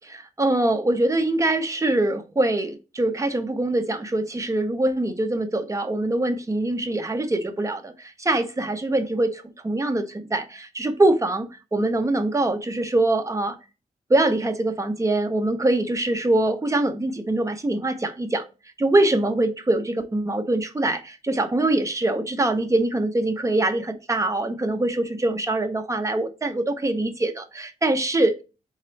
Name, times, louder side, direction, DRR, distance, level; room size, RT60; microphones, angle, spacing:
voice 1, 0.1-13.5 14.1-18.4 18.8-28.3, right 2 dB, 20° right, 0.6 m, -23 dB
4.2 x 3.6 x 3.1 m
wide cardioid pair, 120°, 14 cm